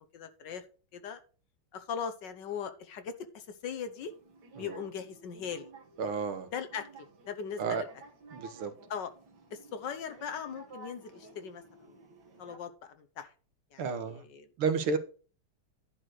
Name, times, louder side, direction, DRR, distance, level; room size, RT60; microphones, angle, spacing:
voice 1, 0.1-0.6 0.9-1.2 1.7-4.1 4.6-5.7 6.5-7.9 8.9-9.1 9.5-11.9 12.4-13.3 13.7-14.5, left 7 dB, 65° left, 1.5 m, -39 dB
sound 1, 3.9-12.6, right 3 dB, 55° right, 2.1 m, -54 dB
voice 2, 6.0-6.5 7.6-7.8 8.3-8.7 13.8-14.2 14.6-15.0, right 5 dB, 85° right, 2.0 m, -31 dB
11.0 x 4.5 x 6.2 m
omnidirectional pair, 2.3 m